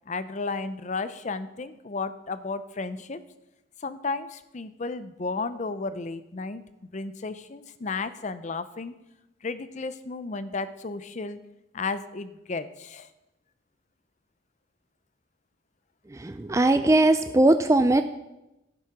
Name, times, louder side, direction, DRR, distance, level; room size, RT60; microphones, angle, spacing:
voice 1, 0.1-3.2 3.8-6.6 6.9-9.0 9.4-11.4 11.7-13.1, left 3 dB, 40° left, 13 dB, 0.6 m, -33 dB
voice 2, 16.2-18.0, right 2 dB, 15° right, 9 dB, 0.4 m, -20 dB
11.5 x 7.7 x 5.9 m, 0.94 s
head